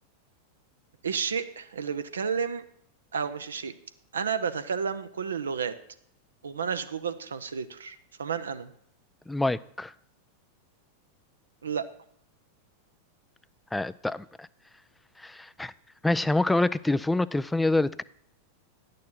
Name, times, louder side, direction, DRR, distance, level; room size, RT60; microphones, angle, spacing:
voice 1, 1.0-2.6 3.1-3.7 4.1-5.8 6.4-8.7 11.6-11.9, right 6 dB, 70° right, 10 dB, 0.6 m, -31 dB
voice 2, 9.3-9.9 13.7-14.5 15.2-15.7 16.0-18.0, left 2 dB, 5° left, 17 dB, 0.3 m, -26 dB
10.5 x 6.6 x 5.5 m, 0.69 s
figure-of-eight pair, 90°, 0 cm